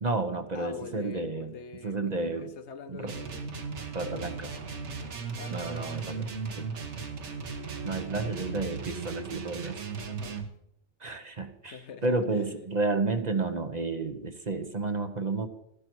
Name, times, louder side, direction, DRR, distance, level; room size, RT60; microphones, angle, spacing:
voice 1, 0.0-1.5 1.8-2.5 2.9-3.1 3.9-4.5 5.5-6.3 6.6-6.7 7.8-9.8 11.0-15.5, right 3 dB, 40° right, 1.0 m, -31 dB
voice 2, 0.5-3.5 4.0-4.3 5.4-6.3 10.0-10.5 11.7-12.5, left 6 dB, 70° left, 1.2 m, -44 dB
sound 1, 3.0-10.5, right 5 dB, 75° right, 1.5 m, -37 dB
sound 2, 3.4-10.4, right 5 dB, 20° right, 0.7 m, -51 dB
13.0 x 11.5 x 4.7 m
omnidirectional pair, 1.2 m